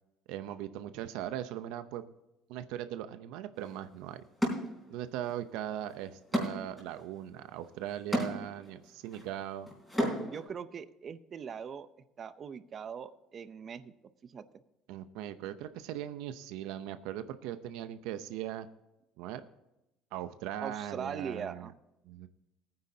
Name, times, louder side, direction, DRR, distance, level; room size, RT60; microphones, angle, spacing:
voice 1, 0.3-2.1 2.5-4.2 4.9-9.7 14.9-18.7 19.2-19.4 20.1-21.7 22.0-22.3, right 11 dB, 85° right, 11 dB, 0.7 m, -39 dB
sound 1, 3.6-3.7 4.4-5.3 5.7-10.5, equal, 5° left, 3.6 m, -35 dB
voice 2, 10.2-11.9 12.2-13.9 14.2-14.4 20.6-21.7, right 7 dB, 30° right, 13 dB, 0.6 m, -41 dB
18.5 x 9.6 x 2.8 m, 0.92 s
cardioid pair, 165°, 0 cm